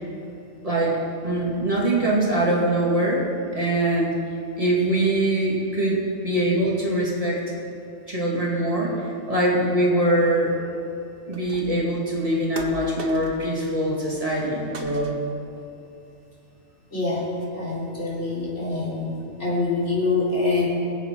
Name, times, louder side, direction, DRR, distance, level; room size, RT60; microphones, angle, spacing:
voice 1, 0.6-3.3 3.5-4.1 4.6-7.4 8.1-10.6 11.3-15.2, right 1 dB, 30° right, -4 dB, 2.5 m, -23 dB
sound 1, 11.3-11.9 12.6-13.6 13.9-14.5 14.7-15.4, right 3 dB, 55° right, 1.3 m, -40 dB
voice 2, 16.9-17.3 17.5-19.1 19.4-20.7, left 3 dB, 85° left, -6 dB, 3.7 m, -25 dB
23.0 x 8.3 x 4.5 m, 2.7 s
omnidirectional pair, 1.2 m